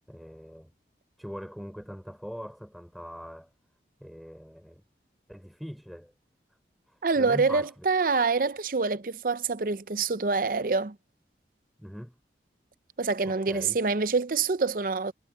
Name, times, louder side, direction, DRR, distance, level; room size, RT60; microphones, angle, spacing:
voice 1, 0.1-0.7 1.2-3.5 4.0-4.8 5.3-6.1 6.9-7.7 11.8-12.2 13.2-13.8, equal, ahead, 5.1 m, -42 dB
voice 2, 7.0-11.0 13.0-15.1, right 4 dB, 50° right, 0.6 m, -26 dB
head